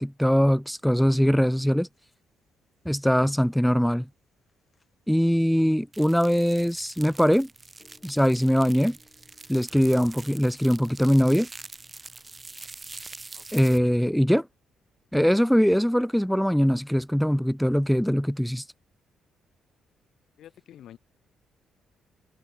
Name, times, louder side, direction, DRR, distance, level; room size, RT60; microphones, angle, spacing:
voice 1, 0.0-1.9 2.9-4.1 5.1-7.5 8.0-9.0 9.5-11.5 13.5-14.5 15.1-18.6, equal, ahead, 0.3 m, -22 dB
sound 1, 1.8-13.4, left 4 dB, 30° left, 6.0 m, -66 dB
sound 2, 5.9-13.8, right 3 dB, 25° right, 3.3 m, -45 dB
voice 2, 13.3-13.7 20.4-21.0, left 11 dB, 70° left, 3.0 m, -49 dB
cardioid pair, 90°, 0 cm